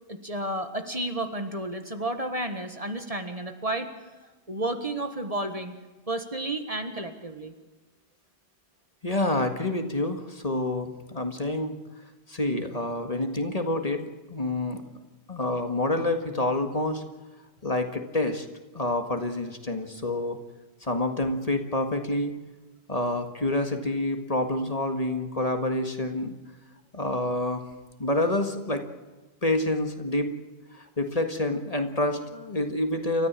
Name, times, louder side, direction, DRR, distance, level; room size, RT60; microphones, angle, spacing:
voice 1, 0.1-3.9 4.5-5.7 6.1-7.5, right 1 dB, 35° right, 7 dB, 1.7 m, -31 dB
voice 2, 9.0-11.8 12.3-14.0 14.3-14.8 15.3-17.0 17.6-18.5 18.7-20.4 20.8-22.3 22.9-26.4 26.9-27.7 28.0-28.8 29.4-30.3 30.7-33.3, left 2 dB, 35° left, 5 dB, 1.9 m, -27 dB
29.0 x 13.5 x 7.5 m, 1.2 s
omnidirectional pair, 1.1 m